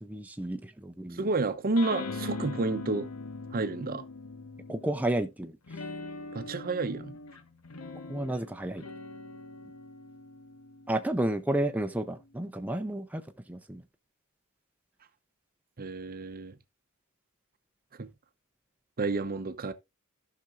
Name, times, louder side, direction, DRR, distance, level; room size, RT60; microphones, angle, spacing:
voice 1, 0.0-1.2 4.7-5.5 8.1-8.8 10.9-13.2 13.5-13.8, right 1 dB, 5° right, 0.6 m, -31 dB
voice 2, 1.1-3.1 3.5-4.0 6.3-7.1 15.8-16.5 18.0-18.1 19.0-19.7, right 3 dB, 45° right, 0.7 m, -30 dB
sound 1, 1.8-5.1 5.7-12.4, left 3 dB, 80° left, 1.1 m, -42 dB
15.0 x 5.9 x 2.5 m
head